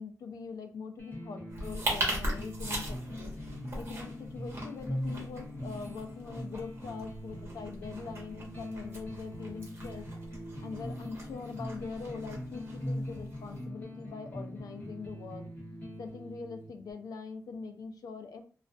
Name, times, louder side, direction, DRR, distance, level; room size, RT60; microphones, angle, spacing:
voice 1, 0.0-3.3 3.8-10.1 10.6-15.5 16.0-18.4, left 5 dB, 85° left, 6 dB, 0.4 m, -43 dB
sound 1, 1.0-16.9, left 1 dB, 25° left, 0.9 m, -41 dB
sound 2, 1.5-13.6, right 1 dB, 45° right, 0.9 m, -40 dB
2.3 x 2.2 x 2.4 m, 0.40 s
wide cardioid pair, 130°, 6 cm